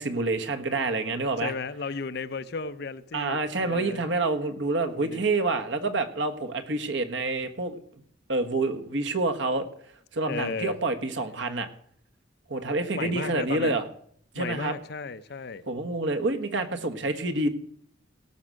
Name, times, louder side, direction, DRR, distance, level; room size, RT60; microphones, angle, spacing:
voice 1, 0.0-1.5 3.1-7.8 8.3-9.7 10.1-11.7 12.5-13.8 14.3-14.7 15.7-17.5, right 2 dB, 70° right, 1.5 m, -27 dB
voice 2, 1.4-4.1 5.0-5.2 10.3-10.8 12.9-13.8 14.3-15.7, left 4 dB, 55° left, 0.6 m, -34 dB
17.5 x 6.1 x 6.4 m
head